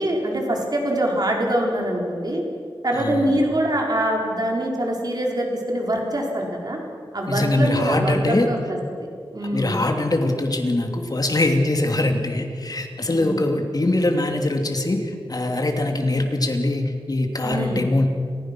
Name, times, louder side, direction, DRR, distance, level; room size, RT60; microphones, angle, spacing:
voice 1, 0.0-2.4 2.8-6.8 7.1-9.8 13.1-13.4 17.4-17.8, right 1 dB, 45° right, 0 dB, 4.4 m, -24 dB
voice 2, 2.9-3.3 7.3-8.5 9.5-18.1, left 2 dB, 45° left, 4 dB, 2.7 m, -22 dB
29.5 x 15.5 x 6.1 m, 2.3 s
wide cardioid pair, 75°, 9 cm